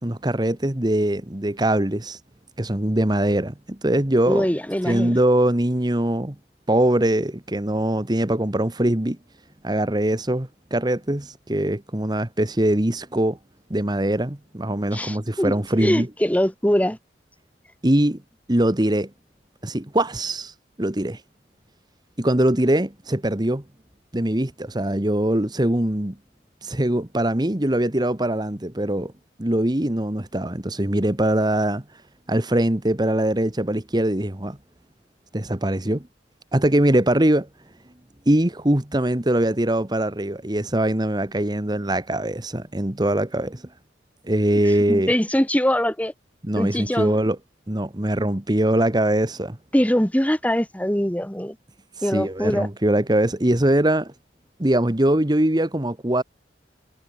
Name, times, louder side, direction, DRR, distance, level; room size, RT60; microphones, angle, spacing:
voice 1, 0.0-2.2 2.6-4.5 4.8-6.3 6.7-9.2 9.6-13.4 13.7-16.1 17.8-18.2 18.5-19.1 19.6-20.5 20.8-21.2 22.2-23.6 24.1-26.1 26.6-29.1 29.4-31.8 32.3-34.6 35.3-36.1 36.5-37.5 38.3-43.6 44.2-45.1 46.4-47.4 47.7-49.6 52.0-54.1 54.6-56.2, right 1 dB, 25° right, 1.4 m, -22 dB
voice 2, 4.3-5.2 14.9-15.5 15.8-17.0 44.9-46.1 46.6-47.2 49.7-51.6 52.0-52.7, equal, 10° left, 1.8 m, -22 dB
head